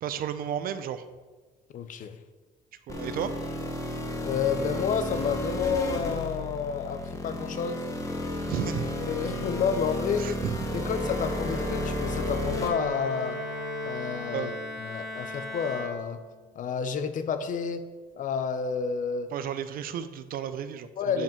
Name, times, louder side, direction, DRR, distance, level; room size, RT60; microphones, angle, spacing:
voice 1, 0.0-1.0 2.9-3.3 8.5-8.9 10.2-10.8 14.3-14.5 19.3-21.2, right 9 dB, 60° right, 12 dB, 0.5 m, -33 dB
voice 2, 1.7-2.2 4.2-7.8 9.0-10.3 10.7-13.4 13.8-14.5 14.8-16.2 16.6-17.9 18.1-19.3 21.0-21.2, left 6 dB, 50° left, 10 dB, 0.6 m, -30 dB
sound 1, 2.9-12.7, left 1 dB, 20° left, 1.1 m, -33 dB
Wind instrument woodwind instrument, 10.6-14.7, equal, 40° right, 1.5 m, -37 dB
Bowed string instrument, 12.6-16.6, left 2 dB, 5° right, 2.0 m, -39 dB
5.3 x 5.2 x 5.3 m, 1.3 s
cardioid pair, 110°, 17 cm